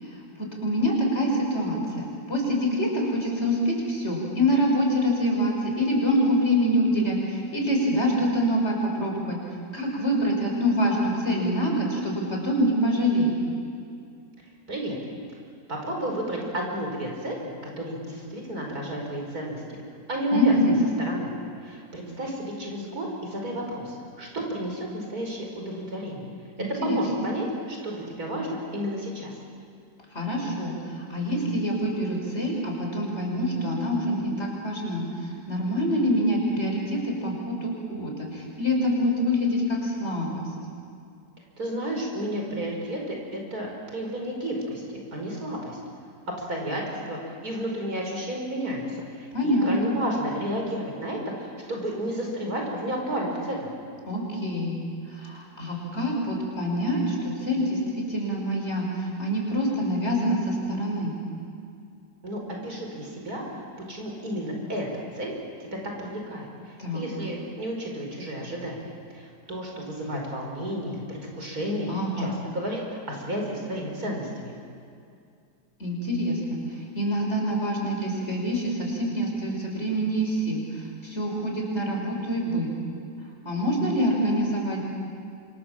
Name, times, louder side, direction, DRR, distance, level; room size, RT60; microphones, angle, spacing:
voice 1, 0.4-9.4 9.7-13.3 20.3-20.8 26.6-27.0 30.1-30.7 31.1-35.1 35.5-40.5 49.3-49.9 54.1-54.8 55.2-61.1 66.8-67.1 71.9-72.3 75.8-76.6 76.9-80.6 81.0-82.7 83.4-84.8, equal, 40° left, -1 dB, 6.4 m, -25 dB
voice 2, 15.7-19.6 20.1-20.5 21.0-21.3 21.6-26.3 26.8-29.3 41.6-44.8 45.1-45.8 46.5-48.8 49.1-53.7 62.2-63.6 63.9-64.9 65.1-65.3 65.6-66.5 66.9-71.9 72.2-74.5, equal, 60° right, 0 dB, 5.8 m, -32 dB
29.0 x 26.0 x 7.5 m, 2.4 s
omnidirectional pair, 1.8 m